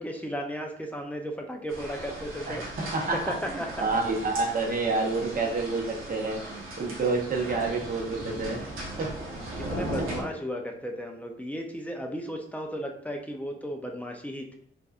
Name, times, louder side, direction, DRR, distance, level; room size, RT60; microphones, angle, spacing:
voice 1, 0.0-2.6 3.1-3.7 7.0-7.2 9.6-14.6, equal, 5° left, 2 dB, 0.4 m, -35 dB
sound 1, 1.7-10.2, right 1 dB, 85° right, 0.9 m, -38 dB
voice 2, 2.5-8.6 9.0-9.1, right 3 dB, 45° right, 0 dB, 0.8 m, -29 dB
3.4 x 2.6 x 2.4 m, 0.71 s
wide cardioid pair, 125°, 21 cm